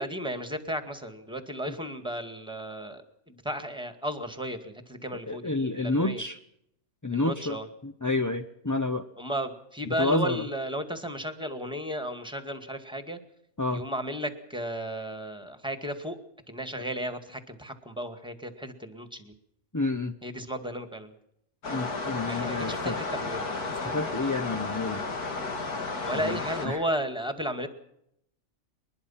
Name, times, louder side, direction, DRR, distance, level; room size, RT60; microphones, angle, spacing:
voice 1, 0.0-6.2 7.1-7.7 9.2-13.2 13.7-16.2 16.5-19.3 20.2-21.1 22.3-23.5 26.0-27.7, equal, 5° right, 8 dB, 1.9 m, -34 dB
voice 2, 5.3-6.4 7.0-7.6 7.8-9.0 9.9-10.4 13.6-13.8 19.7-20.1 21.7-23.0 23.8-25.0 26.1-26.8, left 2 dB, 20° left, 6 dB, 0.5 m, -29 dB
sound 1, 21.6-26.7, left 3 dB, 85° left, 2.8 m, -33 dB
23.0 x 20.5 x 5.7 m, 0.76 s
omnidirectional pair, 1.6 m